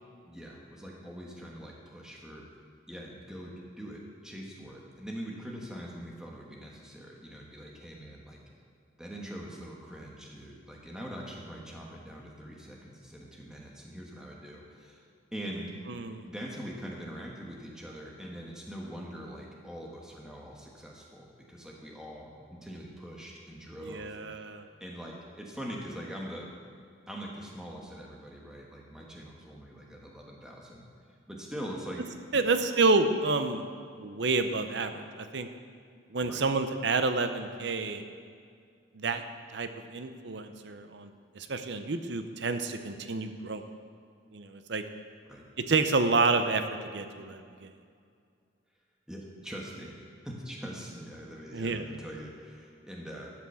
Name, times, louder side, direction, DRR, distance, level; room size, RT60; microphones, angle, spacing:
voice 1, 0.3-2.5 2.9-8.4 9.0-15.0 15.3-15.7 16.2-24.5 24.8-26.5 27.1-30.9 31.3-32.1 32.3-32.6 36.2-36.5 45.2-45.5 49.1-53.3, equal, 5° right, -2 dB, 1.3 m, -43 dB
voice 2, 15.9-16.3 23.8-24.6 32.3-33.6 34.0-35.5 36.1-38.0 38.9-39.2 39.5-43.6 44.3-44.8 45.7-47.7 51.5-51.8, right 3 dB, 65° right, 8 dB, 0.7 m, -29 dB
12.5 x 5.9 x 7.0 m, 2.3 s
head